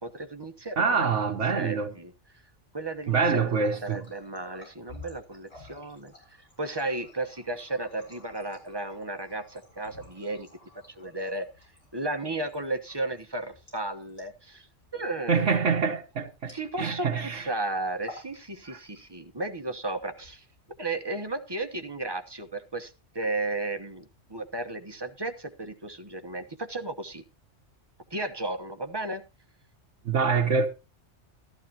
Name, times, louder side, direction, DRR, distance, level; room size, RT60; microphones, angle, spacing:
voice 1, 0.0-2.1 2.7-6.1 6.6-10.5 10.9-11.5 11.9-14.7 14.9-15.5 16.5-20.4 20.8-24.0 24.3-27.2 28.1-29.2, right 2 dB, 20° right, 1.0 m, -34 dB
voice 2, 0.8-1.9 3.1-4.0 15.3-17.5 18.7-18.8 30.0-30.7, right 5 dB, 80° right, 1.5 m, -25 dB
Water tap faucet, 3.1-17.1 17.4-17.6 17.9-18.4 18.7-19.3 20.0-20.8, left 2 dB, 60° left, 7.3 m, -51 dB
13.5 x 13.5 x 2.9 m
omnidirectional pair, 1.2 m